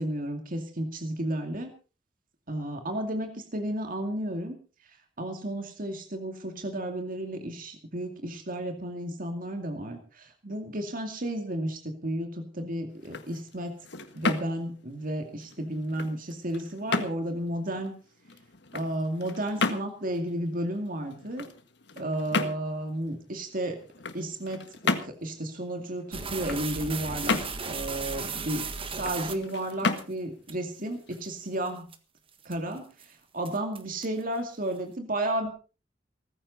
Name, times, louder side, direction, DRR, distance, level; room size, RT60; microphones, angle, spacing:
voice 1, 0.0-1.7 2.5-4.6 5.2-13.7 14.1-17.9 18.7-21.5 22.0-23.8 24.1-27.4 27.6-28.6 28.9-31.9 32.4-35.5, right 1 dB, 50° right, 5 dB, 2.4 m, -33 dB
sound 1, 12.9-31.8, left 3 dB, 65° left, 1.7 m, -35 dB
sound 2, 26.1-30.0 30.5-30.6 31.1-31.3 31.7-32.0 32.4-32.7 33.0-33.1 33.5-34.2, right 5 dB, 30° right, 1.5 m, -36 dB
18.5 x 15.0 x 4.1 m, 0.36 s
head